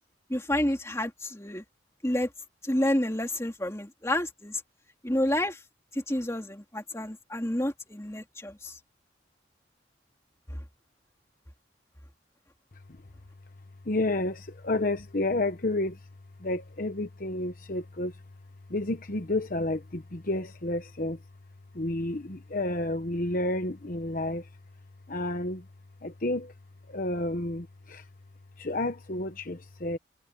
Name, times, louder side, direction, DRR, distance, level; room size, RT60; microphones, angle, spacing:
voice 1, 0.3-1.6 2.0-2.3 2.6-4.6 5.0-5.6 5.9-8.8 10.5-10.6, left 1 dB, 15° left, 2.7 m, -29 dB
voice 2, 13.8-16.0 16.4-18.2 18.7-21.2 21.7-24.5 25.1-25.6 26.0-26.5 26.9-28.1 28.6-30.0, left 2 dB, 50° left, 1.0 m, -30 dB
head